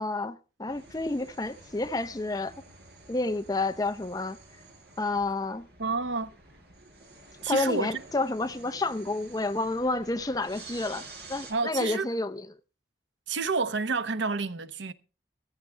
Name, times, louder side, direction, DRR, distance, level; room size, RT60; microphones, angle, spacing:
voice 1, 0.0-2.5 3.1-4.4 5.0-5.7 7.5-12.5, left 2 dB, 20° left, 0.7 m, -30 dB
sound 1, 0.7-11.5, right 3 dB, 65° right, 5.2 m, -50 dB
voice 2, 5.8-6.3 7.4-8.0 11.5-12.1 13.3-14.9, right 4 dB, 90° right, 0.9 m, -29 dB
14.5 x 14.5 x 3.3 m
head